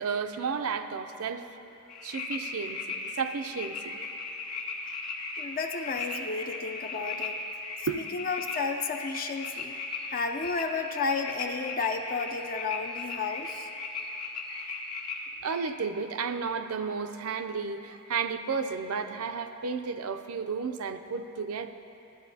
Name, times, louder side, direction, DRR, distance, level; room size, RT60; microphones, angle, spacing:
voice 1, 0.0-1.4 2.0-4.0 7.9-8.0 15.4-21.7, right 5 dB, 75° right, 8 dB, 0.5 m, -32 dB
sound 1, 1.9-15.3, left 3 dB, 90° left, 1.3 m, -37 dB
voice 2, 5.4-7.4 8.1-9.8 10.1-13.7, left 4 dB, 40° left, 5 dB, 0.4 m, -32 dB
14.0 x 12.0 x 2.7 m, 2.9 s
head